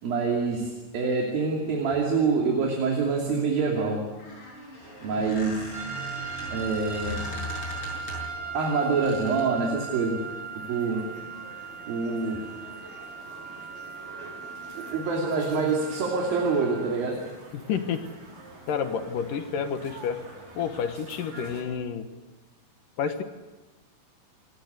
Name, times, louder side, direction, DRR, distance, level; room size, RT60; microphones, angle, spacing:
voice 1, 0.0-4.1 5.0-5.6 6.5-7.2 8.5-10.2 10.6-11.1 11.9-12.5 14.2-14.3 14.7-17.2, right 4 dB, 70° right, -1 dB, 4.5 m, -26 dB
Squeak, 4.2-8.4 9.0-9.5, left 1 dB, 30° left, 8.3 m, -39 dB
sound 1, 4.8-21.6, right 1 dB, 90° right, 7.4 m, -48 dB
sound 2, 5.7-16.8, right 6 dB, 45° right, 4.9 m, -38 dB
voice 2, 17.5-18.0 18.7-20.2 20.6-22.1 23.0-23.2, left 7 dB, 65° left, 8 dB, 2.7 m, -29 dB
28.0 x 18.0 x 8.1 m, 1.1 s
omnidirectional pair, 4.4 m